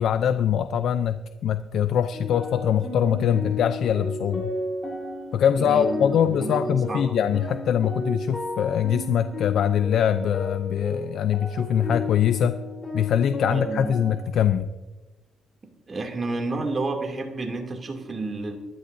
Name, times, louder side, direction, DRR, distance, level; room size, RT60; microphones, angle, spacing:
voice 1, 0.0-4.5 5.3-12.6 12.9-14.7, left 9 dB, 70° left, 10 dB, 0.5 m, -23 dB
sound 1, 2.1-14.2, left 2 dB, 25° left, 4.1 m, -33 dB
voice 2, 5.5-7.1 13.5-13.9 15.9-18.6, right 3 dB, 35° right, 2 dB, 2.7 m, -30 dB
25.0 x 11.5 x 2.7 m, 1.2 s
cardioid pair, 90°, 0 cm